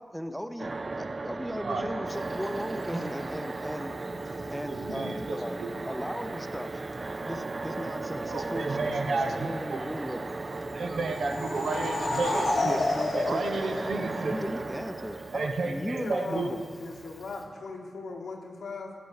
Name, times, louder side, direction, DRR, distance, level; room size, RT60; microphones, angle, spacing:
voice 1, 0.0-3.9 4.5-6.8 7.2-8.9 9.3-10.2 12.0-13.5 14.2-16.6, equal, ahead, 9 dB, 0.6 m, -37 dB
sound 1, 0.6-16.5, right 3 dB, 40° right, 0.3 m, -36 dB
voice 2, 1.6-1.9 4.7-5.7 8.3-9.8 10.5-12.8 13.1-14.3 15.3-16.6, right 3 dB, 85° right, 4 dB, 1.0 m, -32 dB
Insect, 2.1-17.5, right 1 dB, 20° right, 1.7 m, -49 dB
sound 2, 11.0-14.5, left 2 dB, 70° left, 1.3 m, -30 dB
voice 3, 16.0-16.5 16.8-18.9, left 4 dB, 90° left, 2 dB, 1.3 m, -38 dB
14.0 x 5.3 x 6.5 m, 2.1 s
wide cardioid pair, 85°, 0 cm